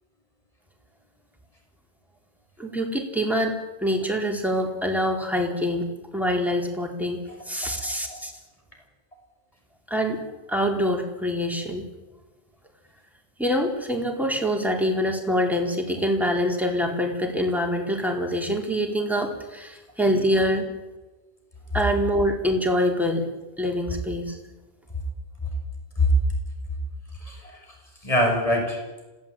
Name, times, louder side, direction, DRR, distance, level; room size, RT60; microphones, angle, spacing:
voice 1, 2.6-8.3 9.9-10.2 10.5-11.9 13.4-20.7 21.7-23.2 23.6-24.4, equal, ahead, 1 dB, 4.3 m, -25 dB
voice 2, 7.6-8.2 26.0-26.1 27.2-27.6 28.0-28.8, left 2 dB, 35° left, 2 dB, 6.5 m, -25 dB
26.5 x 17.5 x 9.1 m, 1.1 s
omnidirectional pair, 1.1 m